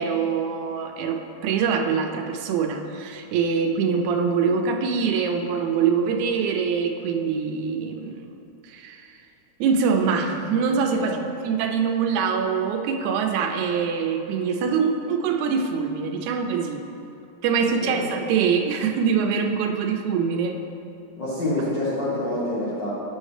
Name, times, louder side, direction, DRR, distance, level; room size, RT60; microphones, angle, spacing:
voice 1, 0.0-8.3 8.6-9.1 9.6-11.2 11.4-16.8 17.4-20.6, right 6 dB, 85° right, 4 dB, 1.9 m, -24 dB
voice 2, 21.2-22.9, left 1 dB, 55° left, -9 dB, 1.2 m, -27 dB
7.4 x 6.3 x 3.2 m, 2.7 s
omnidirectional pair, 3.4 m